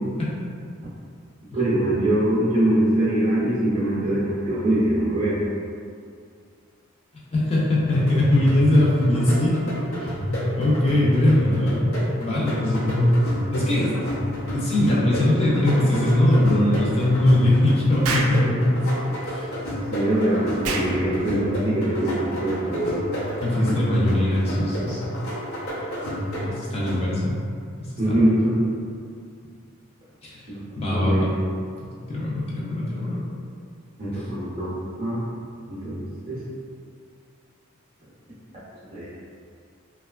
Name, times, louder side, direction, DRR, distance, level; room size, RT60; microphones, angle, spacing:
voice 1, 1.5-5.4 19.9-23.1 28.0-28.7 30.5-30.6 30.9-31.3 34.0-34.7 35.0-35.3 35.7-36.4 38.9-39.1, right 1 dB, 30° right, -11 dB, 0.5 m, -23 dB
voice 2, 7.3-9.6 10.0-13.2 13.5-14.0 14.5-18.8 19.2-19.8 23.4-25.1 26.5-27.4 27.8-28.1 30.2-30.5 30.8-31.3 31.8-33.2 34.1-34.2, left 1 dB, 30° left, -6 dB, 0.5 m, -21 dB
sound 1, 7.8-27.4, equal, 85° left, 0.8 m, -30 dB
Explosion, 18.0-18.4 20.6-20.9, right 3 dB, 85° right, 0.3 m, -26 dB
2.8 x 2.3 x 2.3 m, 2.3 s
head